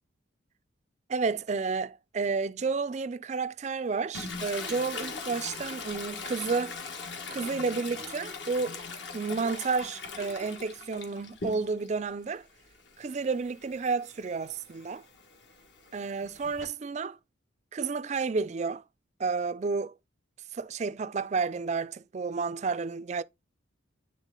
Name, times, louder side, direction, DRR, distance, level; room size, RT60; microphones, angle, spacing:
voice 1, 1.1-6.8 7.3-8.8 9.1-12.5 13.0-15.0 15.9-17.2 17.7-18.8 19.2-19.9 20.5-23.2, right 4 dB, 35° right, 0.3 m, -31 dB
Toilet flush, 4.1-12.0 12.4-16.7, left 4 dB, 65° left, 1.4 m, -41 dB
9.0 x 3.6 x 3.6 m
head